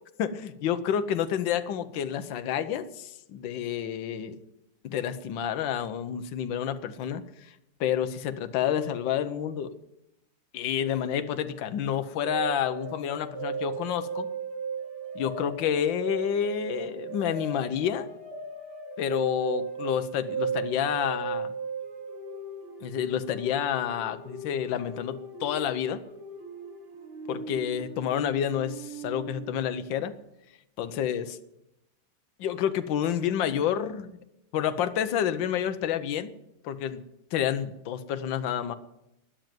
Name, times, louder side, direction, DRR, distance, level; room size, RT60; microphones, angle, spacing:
voice 1, 0.6-4.4 4.8-7.5 7.8-9.7 10.5-14.3 15.1-18.1 19.0-21.5 22.8-26.0 27.3-30.1 30.8-31.4 32.4-34.2 34.5-36.3 36.6-37.0 37.3-38.8, left 9 dB, 65° left, 10 dB, 1.6 m, -29 dB
sound 1, 12.2-29.6, right 5 dB, 90° right, 3.6 m, -37 dB
13.0 x 10.5 x 9.1 m, 0.88 s
omnidirectional pair, 2.3 m